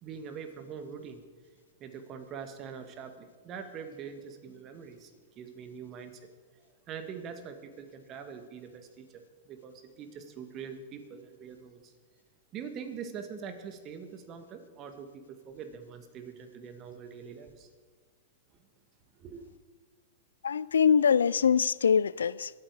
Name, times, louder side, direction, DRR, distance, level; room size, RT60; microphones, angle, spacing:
voice 1, 0.0-1.2 1.8-5.1 5.4-6.2 6.9-11.9 12.5-17.7 19.2-19.5, right 6 dB, 35° right, 1.9 m, -43 dB
voice 2, 20.4-22.5, left 7 dB, 80° left, 0.3 m, -23 dB
22.0 x 8.8 x 4.8 m
hypercardioid pair, 105°, 0 cm